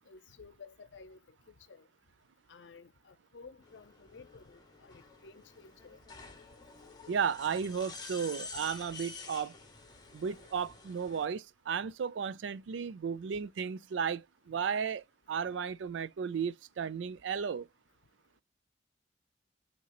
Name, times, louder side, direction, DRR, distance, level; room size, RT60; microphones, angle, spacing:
voice 1, 0.1-1.2 1.5-1.9 2.5-6.0, left 4 dB, 80° left, 0.6 m, -54 dB
sound 1, 3.6-11.2, left 4 dB, 25° left, 1.4 m, -49 dB
voice 2, 7.1-9.5 10.1-17.7, right 6 dB, 80° right, 0.4 m, -34 dB
5.7 x 2.9 x 2.9 m
head